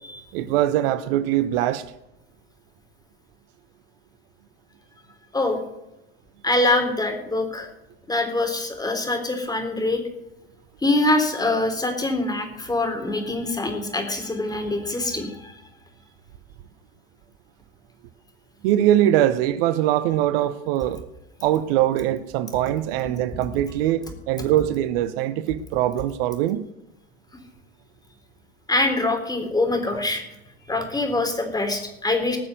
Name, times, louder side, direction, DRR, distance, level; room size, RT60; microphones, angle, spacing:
voice 1, 0.3-1.8 18.6-21.0 21.4-26.6, right 12 dB, 65° right, 1.0 m, -22 dB
voice 2, 6.4-7.7 8.1-10.0 10.8-15.6 28.7-30.2 30.7-32.4, left 2 dB, 10° left, 3.8 m, -24 dB
19.5 x 6.8 x 7.7 m
hypercardioid pair, 85°, 31 cm